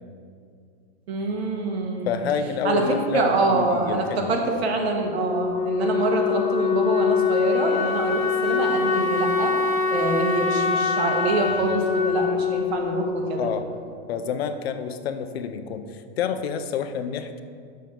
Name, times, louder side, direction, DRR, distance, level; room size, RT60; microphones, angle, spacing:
voice 1, 1.1-2.2 2.6-2.8 3.1-9.5 9.9-13.5, right 3 dB, 70° right, 2 dB, 1.6 m, -25 dB
voice 2, 2.1-4.4 13.4-13.7 14.1-17.4, left 7 dB, 70° left, 9 dB, 0.7 m, -28 dB
Wind instrument woodwind instrument, 5.1-13.8, left 5 dB, 30° left, 0.7 m, -24 dB
6.4 x 5.8 x 6.9 m, 2.2 s
supercardioid pair, 175°, 32 cm